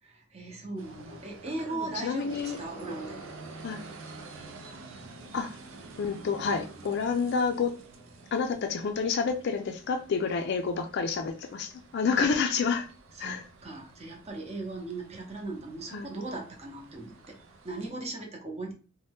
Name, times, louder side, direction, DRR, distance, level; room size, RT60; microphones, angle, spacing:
voice 1, 0.3-3.1 13.2-17.4 17.6-18.7, right 2 dB, 30° right, 0.7 m, -38 dB
sound 1, 0.8-17.9, right 3 dB, 70° right, 0.5 m, -49 dB
voice 2, 1.9-2.6 3.6-3.8 5.3-5.6 6.0-7.8 8.3-12.9 13.2-13.5 15.9-16.1, left 5 dB, 50° left, 0.4 m, -29 dB
sound 2, 2.3-7.2, right 2 dB, ahead, 0.8 m, -51 dB
2.7 x 2.1 x 3.4 m
head